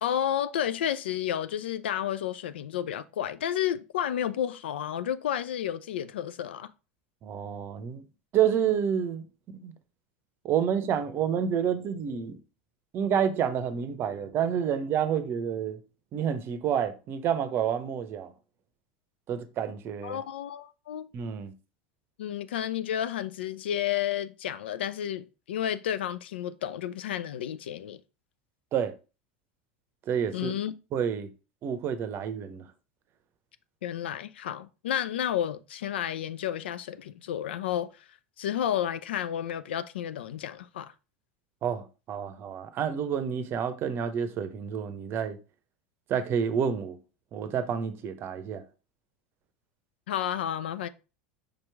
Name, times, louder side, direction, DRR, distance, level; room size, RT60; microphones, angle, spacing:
voice 1, 0.0-6.7 20.0-21.1 22.2-28.0 30.3-30.7 33.8-37.9 38.4-40.9 50.1-50.9, left 10 dB, 85° left, 0.4 m, -31 dB
voice 2, 7.2-8.0 8.3-9.2 9.5-9.7 10.4-12.4 12.9-15.8 16.1-18.3 19.3-20.2 21.1-21.5 28.7-28.9 30.1-30.5 30.9-31.3 31.6-32.6 41.6-45.4 46.1-47.0 47.3-48.6, right 8 dB, 45° right, 0.7 m, -29 dB
5.2 x 3.0 x 3.3 m
hypercardioid pair, 100°, 6 cm